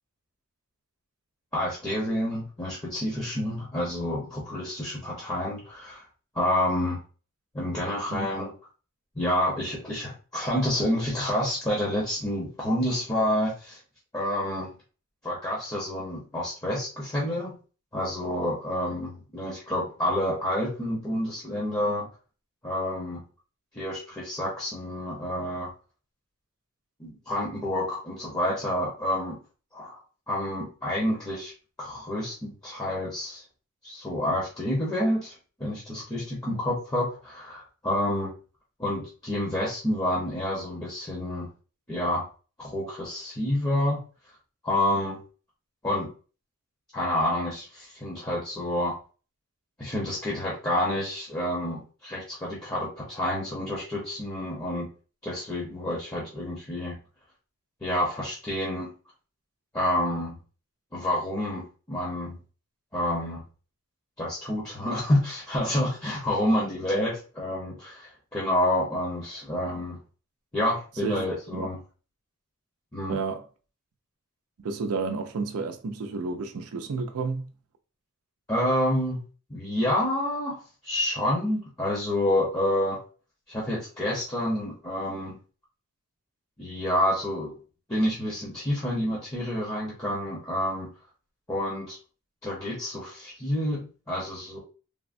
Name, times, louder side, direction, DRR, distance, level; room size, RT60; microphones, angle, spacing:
voice 1, 1.5-6.0 6.3-7.0 7.5-8.5 9.1-13.8 14.1-14.7 15.2-17.6 17.9-22.1 22.6-23.2 23.7-25.7 27.0-29.4 29.7-30.0 30.3-31.5 31.8-33.4 33.8-38.3 38.8-41.5 41.9-42.3 42.6-44.0 44.6-45.2 45.8-46.1 46.9-48.9 49.8-54.9 55.2-57.0 57.8-58.9 59.7-60.4 60.9-62.4 62.9-63.4 64.2-70.0 70.5-71.8 72.9-73.2 78.5-79.2 79.5-83.0 83.5-85.4 86.6-87.5 87.9-90.9 91.5-92.0 92.4-94.6, left 1 dB, 15° left, 0.8 m, -28 dB
voice 2, 73.1-73.4 74.6-77.5, right 4 dB, 80° right, 0.4 m, -31 dB
3.4 x 2.1 x 2.5 m
head